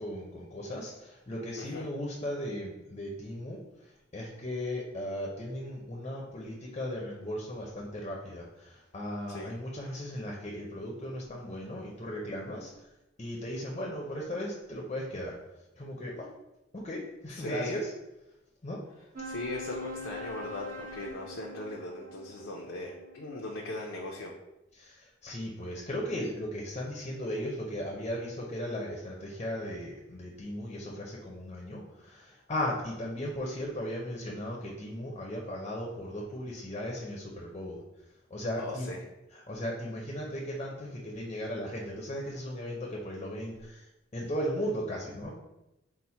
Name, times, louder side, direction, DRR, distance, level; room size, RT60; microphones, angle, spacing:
voice 1, 0.0-12.7 13.2-15.4 15.8-16.3 16.7-17.9 18.6-18.8 24.8-37.8 38.3-38.9 39.3-43.9 44.1-45.3, equal, 30° left, -2 dB, 0.5 m, -37 dB
voice 2, 17.3-17.8 19.2-24.3 38.6-39.0, left 1 dB, 80° left, -1 dB, 0.5 m, -39 dB
sound 1, 19.2-24.0, left 2 dB, 40° right, 0.7 m, -43 dB
4.1 x 2.1 x 4.3 m, 0.93 s
head